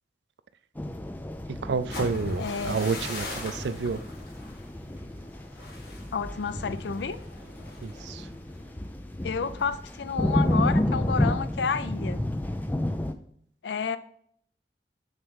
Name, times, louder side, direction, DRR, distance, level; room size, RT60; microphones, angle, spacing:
sound 1, 0.8-13.1, left 1 dB, 10° left, 0.4 m, -31 dB
voice 1, 1.5-4.0 7.8-8.3, right 4 dB, 80° right, 14 dB, 0.4 m, -30 dB
sound 2, 1.7-9.6 10.0-10.3 10.6-11.1, left 2 dB, 60° left, 2.2 m, -41 dB
voice 2, 2.4-2.8 6.1-7.2 9.2-12.2 13.6-14.0, left 6 dB, 80° left, 13 dB, 0.5 m, -30 dB
6.5 x 3.6 x 6.2 m, 0.64 s
head